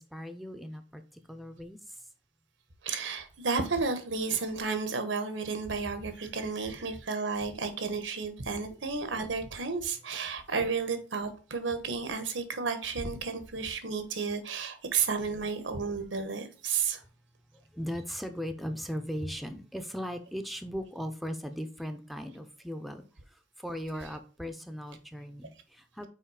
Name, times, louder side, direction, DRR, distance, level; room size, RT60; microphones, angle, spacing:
voice 1, 0.0-2.0 17.5-26.1, equal, ahead, 0.5 m, -38 dB
voice 2, 2.8-17.0 23.9-24.1, right 5 dB, 85° right, 1.2 m, -32 dB
5.7 x 4.6 x 4.8 m
head